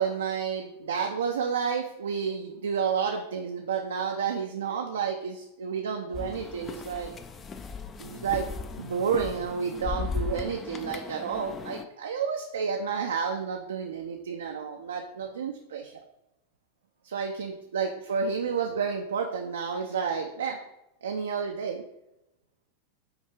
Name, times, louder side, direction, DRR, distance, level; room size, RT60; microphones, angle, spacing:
voice 1, 0.0-7.1 8.0-8.5 8.8-15.9 17.0-20.6 21.0-21.8, right 6 dB, 70° right, 2 dB, 0.4 m, -30 dB
sound 1, 6.1-11.9, left 5 dB, 25° left, 0.3 m, -37 dB
5.5 x 2.4 x 3.4 m, 0.86 s
figure-of-eight pair, 90°, 0 cm